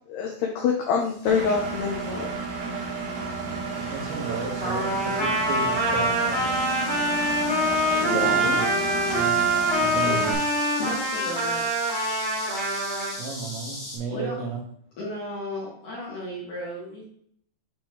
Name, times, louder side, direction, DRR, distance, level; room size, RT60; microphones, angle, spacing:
voice 1, 0.1-2.3 7.8-8.6, left 6 dB, 85° left, 0 dB, 2.3 m, -26 dB
sound 1, 1.0-14.0, left 1 dB, 40° left, 1.6 m, -40 dB
Engine, 1.3-10.3, right 4 dB, 70° right, 2.5 m, -32 dB
voice 2, 3.8-6.5 8.0-8.7 9.1-9.5 9.8-10.4 13.2-14.6, right 5 dB, 90° right, 0 dB, 4.0 m, -33 dB
Trumpet, 4.6-13.1, right 1 dB, 40° right, 0.7 m, -25 dB
voice 3, 9.8-10.2 10.8-11.6 14.1-14.4 15.0-17.0, left 1 dB, 60° left, -6 dB, 2.1 m, -35 dB
9.5 x 3.6 x 3.1 m, 0.64 s
omnidirectional pair, 5.7 m